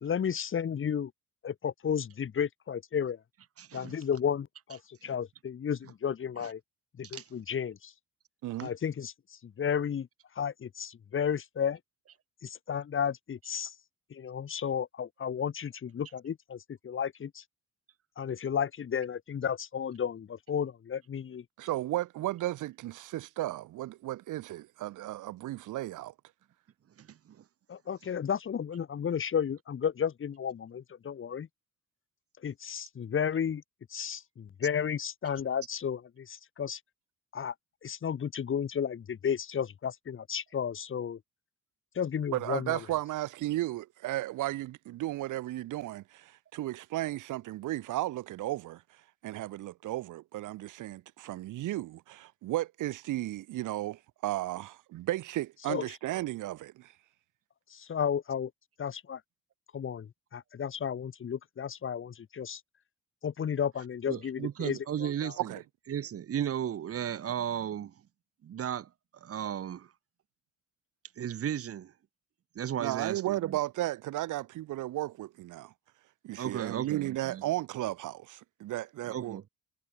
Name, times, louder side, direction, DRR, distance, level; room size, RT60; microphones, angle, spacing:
voice 1, 0.0-1.1 1.4-3.2 3.7-6.6 7.0-7.9 8.6-9.1 9.4-10.1 10.3-11.8 12.4-13.7 14.1-17.4 18.2-21.4 27.7-31.5 32.4-33.6 33.9-36.8 37.3-37.5 37.8-41.2 41.9-42.8 55.7-55.8 57.7-58.5 58.8-59.2 59.7-62.6 63.2-65.3, left 7 dB, 45° left, 1.3 m, -33 dB
voice 2, 3.6-3.9 5.0-5.1 7.1-7.2 27.0-27.4 64.1-65.5 65.9-67.9 68.4-68.9 69.2-69.9 71.2-71.9 72.5-73.6 76.4-77.4 79.1-79.4, right 9 dB, 50° right, 1.0 m, -35 dB
voice 3, 21.6-26.1 42.3-48.8 49.2-56.9 65.4-65.6 72.8-75.7 76.2-79.5, right 15 dB, 85° right, 1.9 m, -34 dB
cardioid pair, 90°, 30 cm